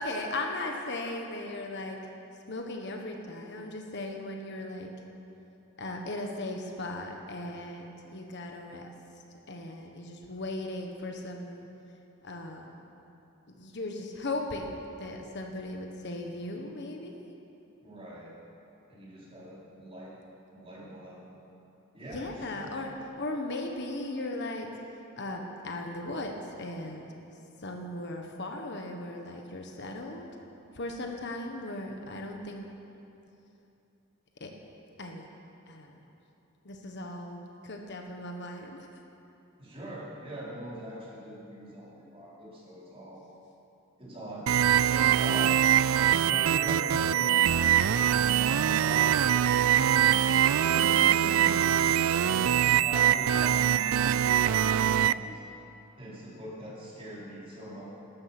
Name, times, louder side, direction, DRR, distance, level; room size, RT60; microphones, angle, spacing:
voice 1, 0.0-2.0 2.5-4.9 5.8-8.9 9.5-11.7 12.2-12.7 13.5-17.1 22.1-22.9 23.2-24.7 25.2-27.1 27.6-30.3 30.7-32.7 34.4-34.5 35.0-35.3 35.7-36.0 36.6-38.9 50.7-51.7, left 2 dB, 55° left, 2 dB, 1.4 m, -37 dB
voice 2, 17.8-18.3 18.9-20.1 20.5-21.2 21.9-22.7 39.6-43.2 44.0-45.6 46.3-49.1 52.3-52.5 52.8-55.4 56.0-57.9, right 1 dB, 30° right, -7 dB, 4.8 m, -43 dB
sound 1, 44.5-55.1, right 10 dB, 80° right, 0.4 m, -23 dB
18.0 x 13.0 x 6.1 m, 2.8 s
head